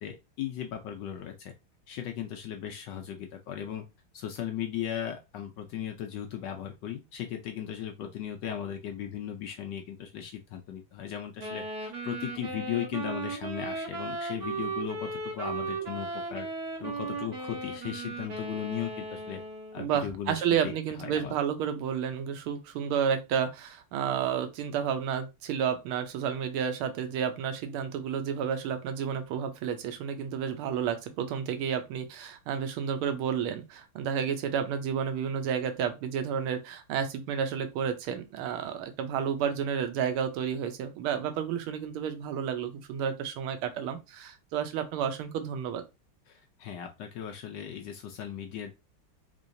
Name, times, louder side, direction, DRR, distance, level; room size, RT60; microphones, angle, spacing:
voice 1, 0.0-1.5 1.9-3.9 4.1-16.5 16.8-19.4 19.7-20.7 21.0-21.3 46.3-48.7, left 10 dB, 75° left, 1.1 m, -37 dB
Wind instrument woodwind instrument, 11.4-19.9, right 3 dB, 50° right, 1.6 m, -36 dB
voice 2, 19.8-45.8, right 8 dB, 85° right, 1.5 m, -31 dB
3.8 x 3.3 x 2.6 m
omnidirectional pair, 2.3 m